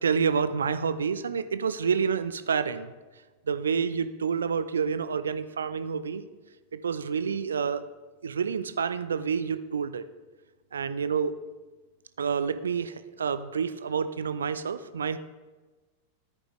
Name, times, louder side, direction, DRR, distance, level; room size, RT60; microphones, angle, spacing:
voice 1, 0.0-2.9 3.5-6.2 6.7-7.8 8.2-10.0 10.7-11.3 12.2-15.2, right 6 dB, 70° right, 12 dB, 0.4 m, -28 dB
13.5 x 5.3 x 3.0 m, 1.2 s
figure-of-eight pair, 90°, 0 cm